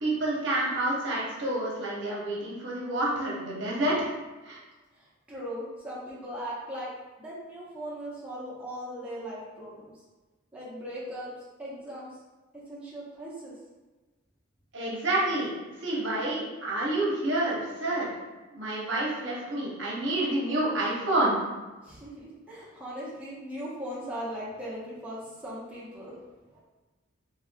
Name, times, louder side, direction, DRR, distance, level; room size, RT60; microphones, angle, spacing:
voice 1, 0.0-4.1 4.4-4.6 14.7-15.5 15.8-18.1 18.5-21.4, right 1 dB, 60° right, -4 dB, 0.8 m, -28 dB
voice 2, 4.9-6.9 7.2-9.9 10.5-11.3 11.6-12.2 12.7-13.6 21.8-26.6, equal, 5° right, -9 dB, 0.9 m, -39 dB
4.1 x 3.4 x 2.3 m, 1.2 s
head